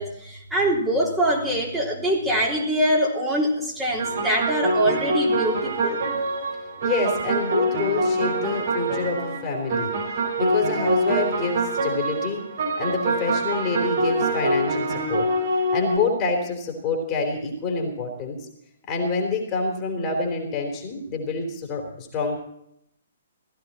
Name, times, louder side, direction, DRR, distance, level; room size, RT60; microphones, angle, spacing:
voice 1, 0.0-6.0, right 1 dB, 10° right, -4 dB, 3.6 m, -24 dB
sound 1, 4.0-16.0, right 1 dB, 50° right, 6.2 m, -25 dB
voice 2, 6.8-9.9 10.4-12.4 12.8-15.3 15.7-18.4 18.9-22.4, left 3 dB, 25° left, 2 dB, 3.6 m, -27 dB
17.0 x 15.0 x 4.3 m, 0.75 s
figure-of-eight pair, 125°, 0 cm